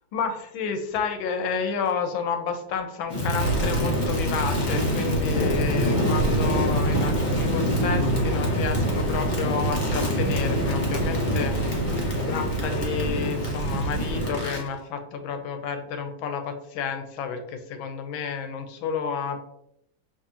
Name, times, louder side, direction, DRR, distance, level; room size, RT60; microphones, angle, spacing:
voice 1, 0.1-11.8 12.1-19.5, left 6 dB, 80° left, 7 dB, 1.5 m, -30 dB
Crackle, 3.1-14.7, equal, 30° left, 1.0 m, -25 dB
6.0 x 3.0 x 2.8 m, 0.77 s
omnidirectional pair, 2.2 m